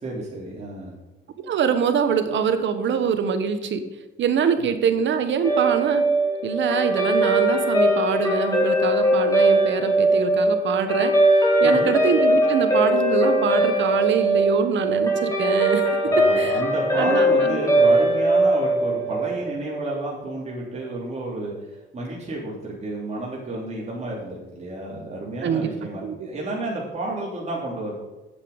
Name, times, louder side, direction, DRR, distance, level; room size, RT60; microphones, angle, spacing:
voice 1, 0.0-0.9 11.6-11.9 16.1-21.5 21.9-28.0, right 2 dB, 35° right, -5 dB, 3.2 m, -31 dB
voice 2, 1.4-3.8 4.2-6.1 6.4-11.1 11.6-15.9 16.4-16.6 17.0-17.6 25.4-25.7 26.0-26.2, right 6 dB, 70° right, 9 dB, 1.2 m, -24 dB
Guitar, 5.4-20.0, right 1 dB, 15° left, 4.0 m, -20 dB
8.2 x 8.1 x 5.5 m, 1.1 s
cardioid pair, 90°, 20 cm